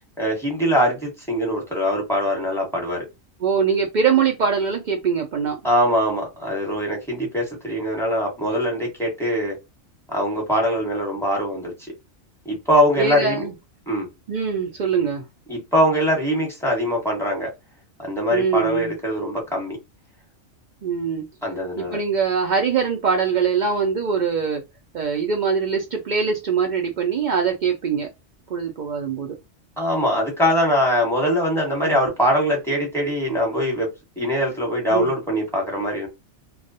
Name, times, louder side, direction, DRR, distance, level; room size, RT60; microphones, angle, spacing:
voice 1, 0.2-3.0 5.6-9.6 10.1-11.7 12.4-13.5 13.9-14.1 15.5-17.5 18.0-19.8 21.4-22.0 29.8-33.9 34.2-36.1, equal, ahead, 0.9 m, -22 dB
voice 2, 3.4-5.6 13.0-13.5 14.3-15.2 18.3-18.9 20.8-21.2 21.8-24.6 24.9-28.1 28.5-29.4 31.8-31.9 34.9-35.1, right 6 dB, 85° right, 0.4 m, -22 dB
2.3 x 2.1 x 2.6 m
omnidirectional pair, 1.4 m